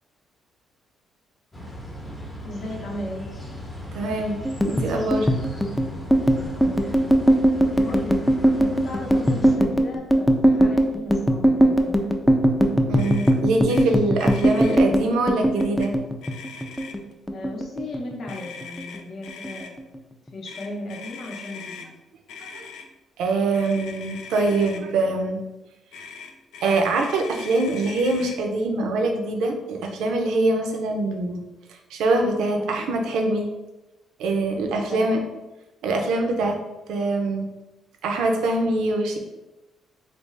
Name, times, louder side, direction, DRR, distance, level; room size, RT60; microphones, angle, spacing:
sound 1, 1.5-9.6, equal, 20° left, 0.7 m, -37 dB
voice 1, 2.4-3.3 6.5-7.0 7.8-8.3 8.5-12.1 17.3-19.8 20.3-21.9 32.5-32.8 34.9-35.1, left 1 dB, 55° left, -1 dB, 0.7 m, -36 dB
voice 2, 3.9-5.3 12.9-15.9 22.5-22.7 23.2-25.4 26.6-31.4 31.9-33.5 34.2-35.2 35.8-36.6 36.9-37.5 38.0-39.2, right 2 dB, 85° right, 3 dB, 0.5 m, -23 dB
sound 2, 4.4-17.0 17.3-18.3 18.6-19.0 19.3-20.0, right 1 dB, 5° left, 0.3 m, -20 dB
Motor vehicle (road), 13.0-13.3 13.7-13.8 14.1-14.8 15.6-15.9 16.2-17.1 18.3-19.7 20.4-21.9 22.3-22.9 23.5-24.8 25.9-28.4, left 5 dB, 85° left, 0.3 m, -41 dB
3.3 x 2.4 x 3.1 m, 1.0 s
cardioid pair, 90°, 0 cm